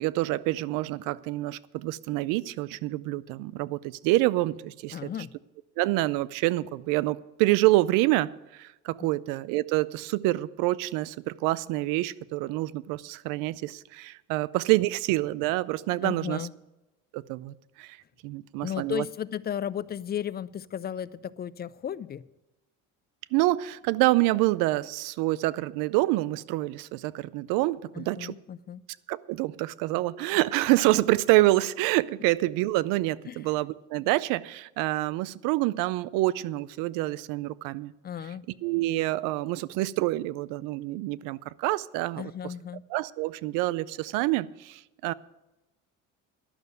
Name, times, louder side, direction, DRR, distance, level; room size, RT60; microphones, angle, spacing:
voice 1, 0.0-5.0 5.8-16.4 17.1-18.0 18.2-19.0 23.3-28.3 29.1-37.9 38.6-42.3 42.9-45.1, right 18 dB, 85° right, 20 dB, 0.5 m, -27 dB
voice 2, 4.9-5.3 16.0-16.5 18.6-22.2 27.9-28.8 33.3-33.5 38.0-38.5 42.2-42.8, left 9 dB, 30° left, 18 dB, 0.4 m, -34 dB
11.5 x 6.6 x 9.4 m, 1.0 s
cardioid pair, 105°, 32 cm